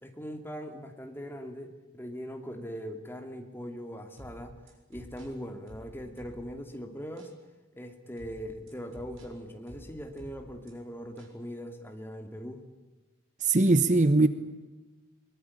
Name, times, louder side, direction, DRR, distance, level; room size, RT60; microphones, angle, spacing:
voice 1, 0.0-4.5 4.9-7.3 7.7-12.6, equal, 10° left, 5 dB, 2.5 m, -41 dB
sound 1, 4.2-6.7 7.2-7.4 8.2-10.7 11.2-11.4, right 1 dB, 80° right, 6.5 m, -51 dB
voice 2, 13.4-14.3, right 2 dB, 40° right, 12 dB, 1.0 m, -21 dB
22.5 x 22.0 x 10.0 m, 1.2 s
head